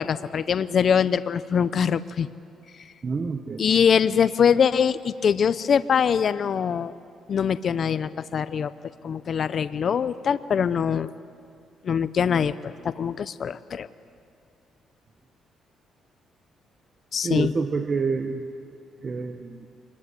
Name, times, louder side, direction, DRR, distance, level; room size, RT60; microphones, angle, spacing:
voice 1, 0.0-2.3 3.6-6.9 7.3-8.7 9.0-11.1 11.8-13.9 17.1-17.5, left 7 dB, 55° left, 14 dB, 0.6 m, -23 dB
voice 2, 3.0-3.7 17.2-18.4 19.0-19.7, right 4 dB, 40° right, 7 dB, 1.2 m, -27 dB
25.0 x 21.5 x 9.6 m, 2.4 s
cardioid pair, 90°, 0 cm